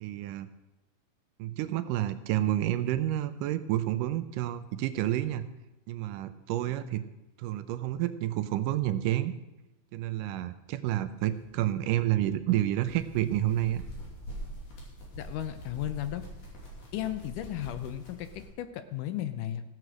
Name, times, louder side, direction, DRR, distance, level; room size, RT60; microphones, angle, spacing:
voice 1, 0.0-0.5 1.4-5.4 5.9-7.0 7.4-9.3 9.9-13.8, right 13 dB, 80° right, 11 dB, 2.1 m, -29 dB
sound 1, 11.2-18.5, equal, 60° left, 4.4 m, -45 dB
voice 2, 15.1-16.2 16.9-19.6, left 12 dB, 80° left, 10 dB, 2.1 m, -35 dB
15.0 x 7.6 x 6.2 m, 0.99 s
omnidirectional pair, 4.0 m